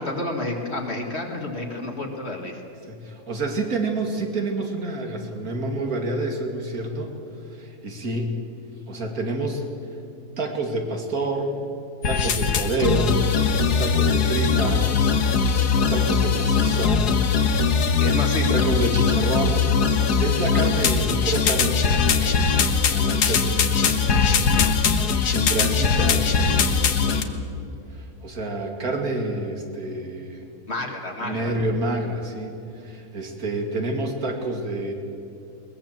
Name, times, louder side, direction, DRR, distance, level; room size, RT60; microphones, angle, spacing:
voice 1, 0.0-2.6 18.0-18.6 30.7-31.5, left 2 dB, 40° left, 1 dB, 2.2 m, -30 dB
voice 2, 2.9-7.1 7.5-8.4 8.9-9.7 10.4-11.6 12.0-14.9 15.2-15.5 15.9-17.1 17.5-17.7 18.5-19.7 20.2-27.4 27.9-30.5 31.2-34.9, right 2 dB, 65° right, 3 dB, 2.8 m, -28 dB
sound 1, 12.0-27.2, left 5 dB, 80° left, 1.8 m, -21 dB
21.5 x 20.0 x 7.5 m, 2.7 s
omnidirectional pair, 1.7 m